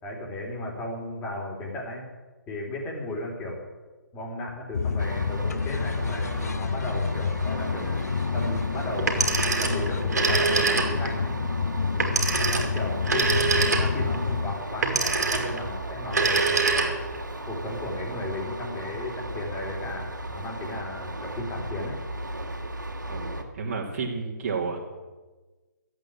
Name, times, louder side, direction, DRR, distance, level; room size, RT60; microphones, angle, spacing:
voice 1, 0.0-2.1 2.5-3.6 4.1-7.9 8.3-11.4 12.5-16.9 17.4-22.0, left 1 dB, 15° left, -1 dB, 3.2 m, -35 dB
sound 1, 4.7-14.6, left 5 dB, 55° left, 0.7 m, -29 dB
sound 2, 5.0-23.4, right 1 dB, 80° right, 2.2 m, -36 dB
Telephone, 9.0-11.2 12.0-14.1 14.8-15.6 16.0-17.2, right 4 dB, 60° right, 2.7 m, -24 dB
voice 2, 23.1-24.8, right 4 dB, 35° right, -4 dB, 2.8 m, -31 dB
13.5 x 8.2 x 8.9 m, 1.3 s
figure-of-eight pair, 135°, 10 cm